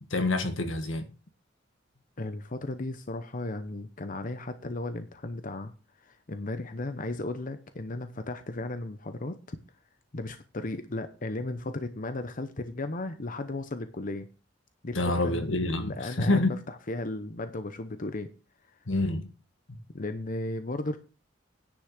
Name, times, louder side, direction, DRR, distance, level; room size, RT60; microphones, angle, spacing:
voice 1, 0.1-1.1 14.9-16.5 18.9-19.3 19.7-19.8, left 2 dB, 80° left, 1.8 m, -27 dB
voice 2, 2.2-5.7 6.0-9.6 10.1-14.3 14.8-18.3 18.7-18.8 19.9-21.0, left 2 dB, 45° left, 0.9 m, -35 dB
10.0 x 6.3 x 6.5 m
head